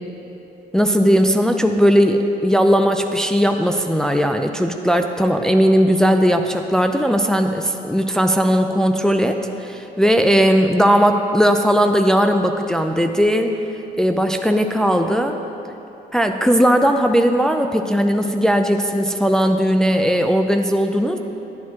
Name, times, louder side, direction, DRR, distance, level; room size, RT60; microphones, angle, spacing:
voice 1, 0.7-13.6 14.0-15.4 16.1-21.2, equal, 5° left, 5 dB, 0.4 m, -17 dB
11.0 x 8.5 x 3.7 m, 2.9 s
cardioid pair, 110°, 17 cm